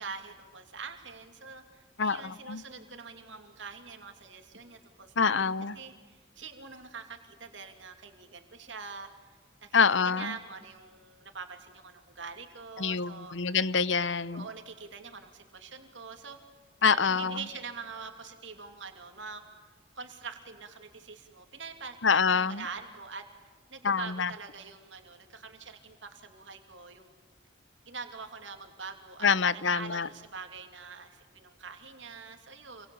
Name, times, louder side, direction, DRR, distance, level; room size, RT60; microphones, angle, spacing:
voice 1, 0.0-5.4 5.7-9.1 9.6-13.6 14.3-16.4 16.8-19.4 19.9-23.2 23.7-27.1 27.9-32.9, right 5 dB, 80° right, 5 dB, 3.0 m, -44 dB
voice 2, 2.0-2.6 5.2-5.7 9.7-10.3 12.8-14.5 16.8-17.4 22.0-22.6 23.8-24.3 29.2-30.1, left 5 dB, 80° left, 17 dB, 0.9 m, -26 dB
28.5 x 23.5 x 8.7 m, 1.4 s
head